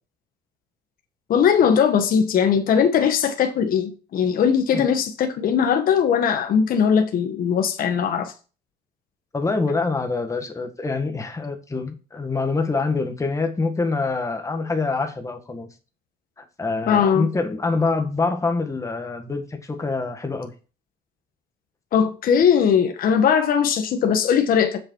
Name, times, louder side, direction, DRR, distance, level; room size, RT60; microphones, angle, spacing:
voice 1, 1.3-8.3 16.9-17.3 21.9-24.8, left 7 dB, 60° left, 1.3 m, -19 dB
voice 2, 9.3-15.7 16.4-20.5, left 3 dB, 20° left, 1.8 m, -25 dB
7.7 x 6.7 x 4.7 m
cardioid pair, 110°, 17 cm